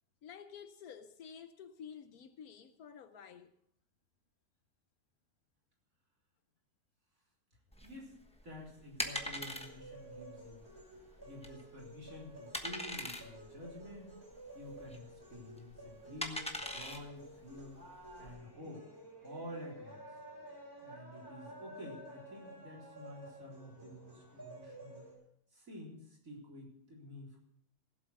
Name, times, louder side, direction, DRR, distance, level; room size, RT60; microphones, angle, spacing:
voice 1, 0.2-3.5, left 7 dB, 75° left, 1.3 m, -51 dB
sound 1, 7.7-18.4, left 1 dB, 5° left, 1.0 m, -43 dB
voice 2, 7.8-8.2 8.4-14.2 14.5-17.8 18.2-18.8 19.2-20.0 20.8-25.1 25.5-27.4, left 1 dB, 65° right, 4.4 m, -50 dB
sound 2, 9.0-25.1, right 1 dB, 15° right, 5.7 m, -52 dB
16.5 x 7.8 x 6.4 m
omnidirectional pair, 1.6 m